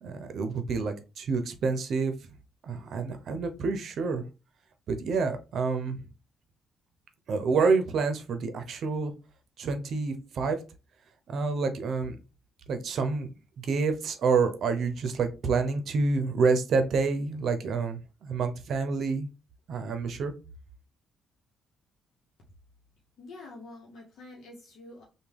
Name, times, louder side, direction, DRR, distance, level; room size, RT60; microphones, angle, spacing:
voice 1, 0.0-2.1 2.6-4.2 4.9-6.1 7.3-9.1 9.6-10.6 11.3-12.2 12.7-13.3 13.6-19.3 19.7-20.3, right 4 dB, 65° right, 8 dB, 0.6 m, -28 dB
voice 2, 23.2-25.0, left 2 dB, 70° left, -2 dB, 0.9 m, -47 dB
3.4 x 2.3 x 3.3 m, 0.30 s
cardioid pair, 90°, 0 cm